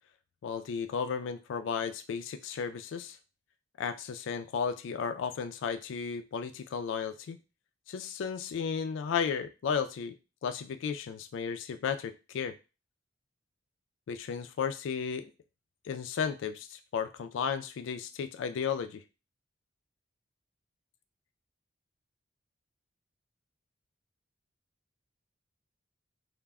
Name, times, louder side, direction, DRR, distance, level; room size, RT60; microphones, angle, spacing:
voice 1, 0.4-3.2 3.8-7.4 7.9-10.2 10.4-12.5 14.1-15.3 15.9-19.0, left 6 dB, 65° left, 10 dB, 0.3 m, -34 dB
2.1 x 2.0 x 3.4 m, 0.30 s
head